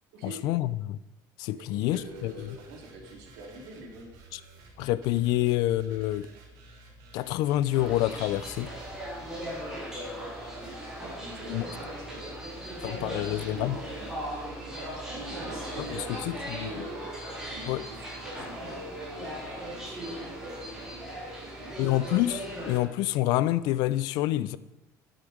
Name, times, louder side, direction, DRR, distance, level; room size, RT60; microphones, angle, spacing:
voice 1, 0.2-1.0 1.4-2.5 4.3-4.4 4.8-6.3 7.1-8.7 11.5-11.6 12.8-13.8 15.8-16.8 17.7-17.9 21.8-24.6, left 15 dB, 65° left, 0.5 m, -27 dB
voice 2, 1.5-4.1 11.1-14.1 14.5-17.0 17.5-19.3 19.6-22.1, right 2 dB, 90° right, 3.2 m, -45 dB
sound 1, 1.9-9.0, right 2 dB, 65° right, 3.0 m, -53 dB
sound 2, 7.7-22.8, right 1 dB, 10° right, 4.0 m, -38 dB
11.5 x 10.0 x 5.1 m
cardioid pair, 175°, 7 cm